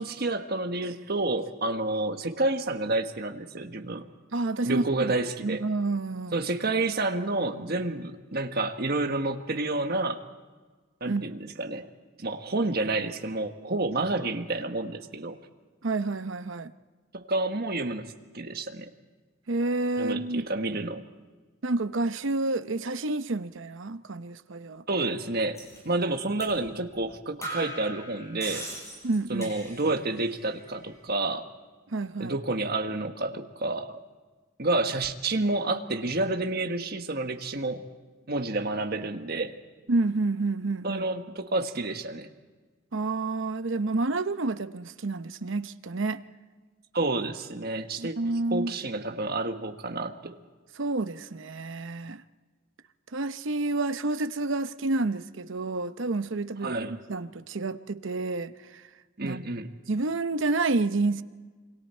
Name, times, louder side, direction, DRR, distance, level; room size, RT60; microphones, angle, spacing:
voice 1, 0.0-4.1 4.6-5.6 6.3-10.2 11.0-11.9 12.2-15.4 17.1-18.9 20.0-21.0 24.9-25.6 25.8-28.7 29.3-31.5 32.2-34.0 34.6-37.9 38.3-39.5 40.8-42.3 46.9-48.2 48.5-50.4 56.6-57.0 59.2-59.7, right 2 dB, 50° right, 1.4 m, -29 dB
voice 2, 4.3-5.1 5.4-6.4 11.0-11.3 15.8-16.7 19.5-20.5 21.6-24.8 29.0-29.5 31.9-32.4 39.9-41.0 42.9-46.2 48.0-48.7 50.8-52.2 53.1-58.8 59.2-59.5 59.9-61.2, right 3 dB, 65° right, 0.8 m, -29 dB
sound 1, 25.6-25.8 26.4-26.6 26.9-27.0 27.4-30.0 30.3-30.9, right 1 dB, 15° left, 7.1 m, -40 dB
27.0 x 25.0 x 4.4 m
head